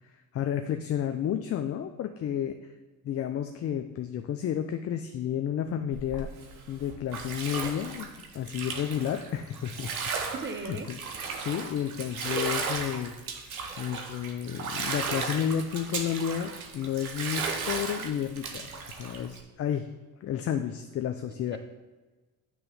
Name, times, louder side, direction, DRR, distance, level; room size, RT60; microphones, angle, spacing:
voice 1, 0.3-2.6 3.0-6.3 6.7-8.1 8.3-9.9 10.7-11.0 11.3-13.1 13.8-19.9 20.2-21.6, left 9 dB, 35° left, 7 dB, 0.5 m, -31 dB
Bathtub (filling or washing), 5.9-19.4, right 5 dB, 80° right, 0.9 m, -35 dB
voice 2, 10.3-10.9 21.2-21.6, right 4 dB, 25° right, 7 dB, 0.9 m, -38 dB
9.0 x 3.1 x 5.5 m, 1.2 s
figure-of-eight pair, 50°, 42 cm